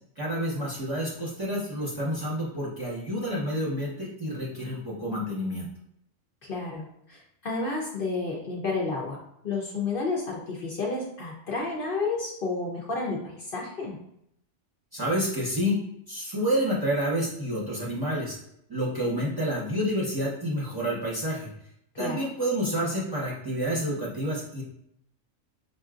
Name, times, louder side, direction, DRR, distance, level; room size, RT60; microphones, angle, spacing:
voice 1, 0.2-5.7 14.9-15.8 16.1-18.4 18.7-21.5 22.0-24.6, equal, 20° right, -7 dB, 0.9 m, -29 dB
voice 2, 6.4-9.2 9.4-14.0 21.9-22.2, left 3 dB, 55° left, -2 dB, 0.8 m, -31 dB
5.7 x 2.6 x 2.4 m, 0.74 s
omnidirectional pair, 1.2 m